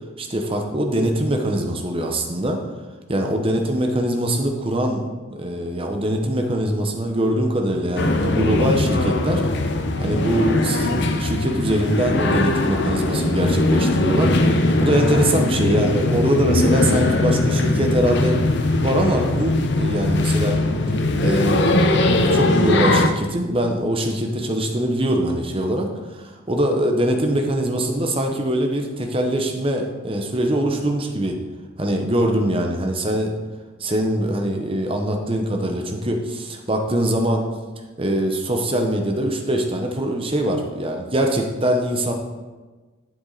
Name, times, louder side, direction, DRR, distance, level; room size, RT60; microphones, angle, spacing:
voice 1, 0.2-2.6 3.1-9.7 10.0-18.4 18.8-20.6 21.2-31.4 31.8-33.3 33.8-37.5 38.0-42.1, right 1 dB, 25° right, 3 dB, 0.9 m, -23 dB
sound 1, 8.0-23.1, left 2 dB, 55° left, 0.7 m, -20 dB
11.5 x 7.0 x 4.0 m, 1.3 s
head